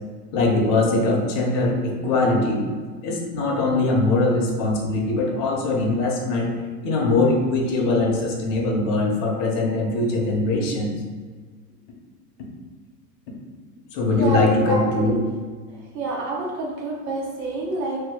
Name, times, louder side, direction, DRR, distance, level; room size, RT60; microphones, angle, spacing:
voice 1, 0.3-2.6 3.0-6.5 6.8-10.9 13.9-15.2, left 2 dB, 55° left, 0 dB, 1.2 m, -21 dB
voice 2, 14.1-15.2 15.9-18.0, right 3 dB, 80° right, -3 dB, 1.2 m, -27 dB
3.1 x 2.7 x 3.7 m, 1.5 s
hypercardioid pair, 90°, 48 cm